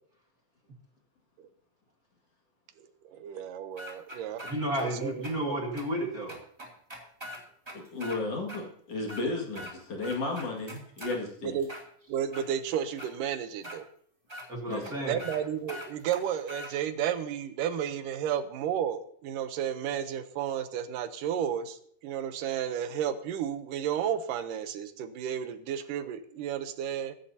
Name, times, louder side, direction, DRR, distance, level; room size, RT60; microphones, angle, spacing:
voice 1, 3.0-4.5 4.8-5.6 11.4-11.7 12.1-13.9 15.0-27.1, right 9 dB, 85° right, 10 dB, 2.5 m, -32 dB
sound 1, 3.8-4.9 5.2-5.3 5.8-5.9 6.3-8.2 8.5-8.6 9.0-9.7 10.0-11.2 11.6-12.5 13.0-13.1 13.6-13.8 14.3-14.5 14.8-14.9 15.2-15.4 15.7-16.7, equal, 10° right, 2.2 m, -42 dB
voice 2, 4.5-6.4 14.5-15.2, right 1 dB, 35° right, 0 dB, 1.8 m, -32 dB
voice 3, 7.7-11.6 14.7-15.0, left 2 dB, 50° left, -1 dB, 3.0 m, -34 dB
23.0 x 11.5 x 2.8 m, 0.62 s
omnidirectional pair, 3.7 m